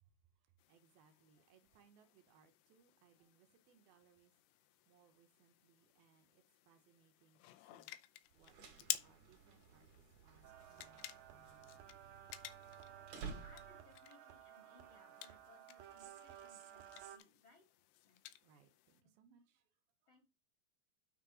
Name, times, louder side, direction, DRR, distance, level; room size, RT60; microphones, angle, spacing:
voice 1, 0.4-11.9 18.4-19.7 20.0-20.2, right 6 dB, 70° right, 2.4 m, -71 dB
Picking Up Flashlight, 0.6-19.0, left 14 dB, 80° left, 2.4 m, -53 dB
sound 1, 8.3-14.1, right 5 dB, 50° right, 2.7 m, -54 dB
sound 2, 10.4-17.2, right 10 dB, 90° right, 2.0 m, -56 dB
voice 2, 13.1-16.9 17.1-17.6 18.0-18.2 20.1-20.2, left 2 dB, 45° left, 1.7 m, -67 dB
9.3 x 4.3 x 4.9 m
omnidirectional pair, 5.3 m